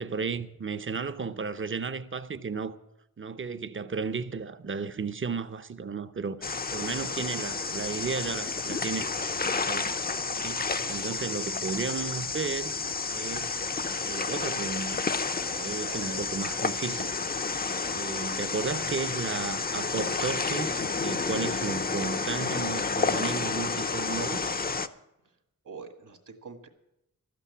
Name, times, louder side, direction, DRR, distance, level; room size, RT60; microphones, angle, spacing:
voice 1, 0.0-2.8 3.2-9.0 9.4-10.0 10.4-12.7 13.1-13.6 14.0-15.0 15.5-17.2 17.9-24.5, right 5 dB, 40° right, 0.7 m, -34 dB
sound 1, 6.4-24.9, left 4 dB, 30° left, 0.5 m, -30 dB
voice 2, 10.7-11.1 15.8-16.3 25.6-26.7, right 4 dB, 65° right, 1.8 m, -45 dB
13.0 x 8.5 x 8.2 m
wide cardioid pair, 110°, 33 cm